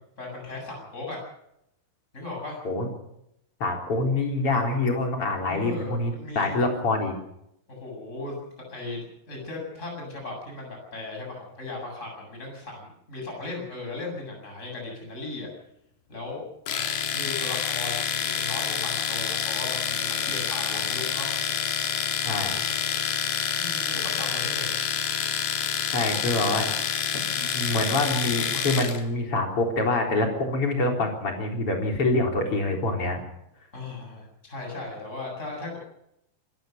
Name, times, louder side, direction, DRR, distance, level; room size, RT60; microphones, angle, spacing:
voice 1, 0.2-1.2 2.1-2.6 5.4-6.6 7.7-8.4 8.7-15.5 16.1-16.4 17.1-21.3 23.6-24.8 33.7-35.8, left 2 dB, 15° left, 0 dB, 7.9 m, -37 dB
voice 2, 3.6-7.1 22.2-22.7 25.9-26.7 27.1-33.2, left 2 dB, 35° left, 2 dB, 4.6 m, -26 dB
Domestic sounds home sounds, 16.7-29.0, left 8 dB, 65° left, 3.4 m, -28 dB
26.0 x 15.5 x 6.7 m, 0.79 s
omnidirectional pair, 4.4 m